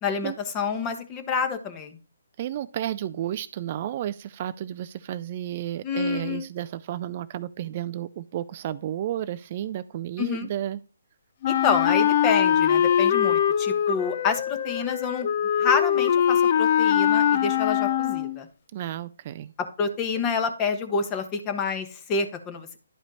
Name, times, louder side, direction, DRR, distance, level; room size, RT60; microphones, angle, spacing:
voice 1, 0.0-2.0 5.8-6.5 10.2-10.5 11.5-15.3 15.6-18.5 19.8-22.8, left 5 dB, 20° left, 7 dB, 1.2 m, -28 dB
voice 2, 2.4-10.8 18.7-19.5, right 12 dB, 40° right, 15 dB, 0.3 m, -32 dB
Wind instrument woodwind instrument, 11.4-18.4, left 9 dB, 40° left, 0.5 m, -22 dB
11.0 x 5.0 x 4.2 m, 0.36 s
hypercardioid pair, 145°, 0 cm